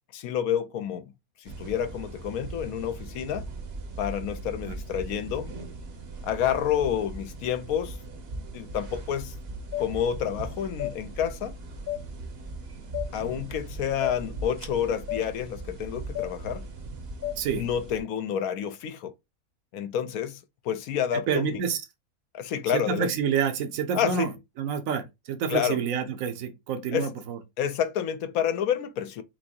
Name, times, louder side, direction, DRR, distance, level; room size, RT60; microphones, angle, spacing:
voice 1, 0.1-1.1 1.4-3.5 4.0-5.5 6.2-8.0 8.5-9.3 9.8-11.6 13.1-16.7 17.5-19.1 19.7-21.6 22.3-23.1 23.9-24.3 25.5-25.8 26.9-27.1 27.6-29.2, left 9 dB, 70° left, 1.0 m, -29 dB
sound 1, 1.5-18.0, right 2 dB, 45° right, 1.0 m, -39 dB
sound 2, 9.7-9.9 10.8-10.9 11.9-12.0 12.9-13.1 14.0-14.2 15.1-15.2 16.1-16.3 17.2-17.4, left 13 dB, 25° left, 0.5 m, -31 dB
voice 2, 21.1-21.8 22.7-24.3 24.6-27.4, right 7 dB, 65° right, 1.2 m, -28 dB
6.0 x 2.7 x 2.7 m
omnidirectional pair, 1.6 m